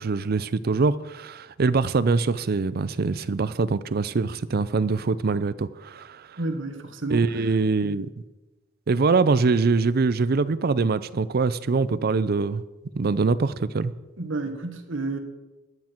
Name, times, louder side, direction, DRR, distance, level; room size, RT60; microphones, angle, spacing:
voice 1, 0.0-6.4 7.1-8.1 8.9-12.6 12.9-13.9, right 4 dB, 50° right, 16 dB, 0.5 m, -23 dB
voice 2, 6.4-7.3 14.2-15.2, right 2 dB, 80° right, 6 dB, 1.5 m, -30 dB
13.5 x 9.5 x 4.5 m, 1.1 s
head